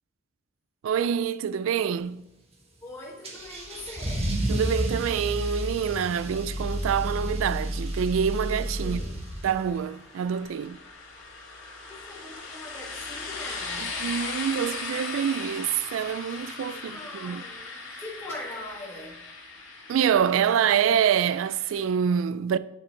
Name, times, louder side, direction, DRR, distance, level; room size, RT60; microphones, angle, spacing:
voice 1, 0.8-2.3 4.5-9.1 9.4-10.8 14.0-17.4 19.9-22.6, right 8 dB, 85° right, 0.3 m, -26 dB
voice 2, 2.8-4.4 8.8-9.2 11.8-14.0 16.7-19.2, left 1 dB, 15° left, 1.4 m, -42 dB
Car / Engine starting / Accelerating revving vroom, 3.2-9.7, right 1 dB, 30° right, 1.3 m, -31 dB
sound 1, 6.9-21.8, left 4 dB, 85° left, 1.9 m, -39 dB
8.9 x 5.3 x 4.4 m
head